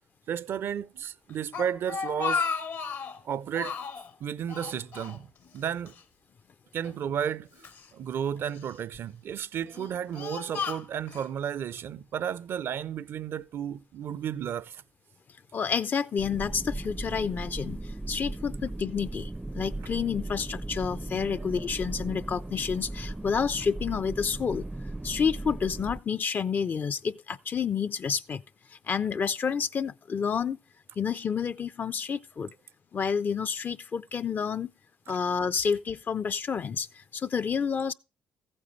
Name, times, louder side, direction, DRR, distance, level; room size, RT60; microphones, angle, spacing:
voice 1, 0.3-2.5 3.2-3.8 4.2-5.3 5.5-6.0 6.7-7.5 7.9-14.8, right 9 dB, 60° right, 0.5 m, -33 dB
Speech, 1.3-3.2 3.5-4.1 4.5-5.6 5.9-6.0 6.8-7.8 8.5-9.0 9.6-11.3, left 6 dB, 65° left, 1.2 m, -34 dB
voice 2, 15.5-24.7 25.0-28.4 28.9-30.6 31.0-32.5 32.9-34.7 35.1-37.9, left 6 dB, 45° left, 0.5 m, -29 dB
sound 1, 16.2-26.0, right 2 dB, 10° right, 0.5 m, -37 dB
15.0 x 8.8 x 3.2 m
hypercardioid pair, 55°, 5 cm